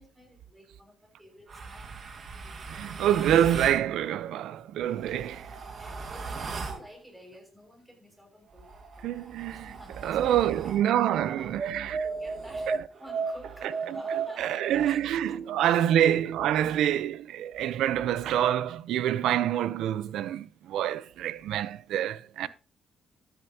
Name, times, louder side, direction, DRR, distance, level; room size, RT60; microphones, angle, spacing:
voice 1, 0.0-1.9 2.3-2.9 4.9-5.3 5.8-10.6 10.8-11.6 12.0-12.7 13.0-15.0 15.2-15.9 22.2-22.5, equal, 5° right, 6.0 m, -52 dB
sound 1, 1.5-3.9 4.8-6.9 8.5-10.9 11.5-15.0, right 4 dB, 50° right, 1.7 m, -36 dB
voice 2, 2.7-5.4 9.0-9.7 10.0-12.0 13.9-14.0 14.4-22.5, right 11 dB, 85° right, 0.6 m, -26 dB
13.5 x 9.7 x 2.9 m
cardioid pair, 90°, 0 cm